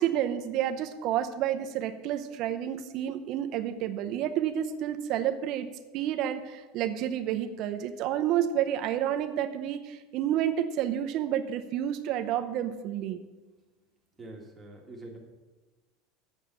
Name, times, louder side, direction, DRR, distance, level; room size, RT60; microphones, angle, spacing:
voice 1, 0.0-5.7 5.9-13.2, right 10 dB, 40° right, 8 dB, 0.7 m, -30 dB
voice 2, 14.2-15.2, right 2 dB, 10° right, -2 dB, 1.7 m, -45 dB
8.4 x 7.3 x 6.9 m, 1.2 s
supercardioid pair, 170°, 0 cm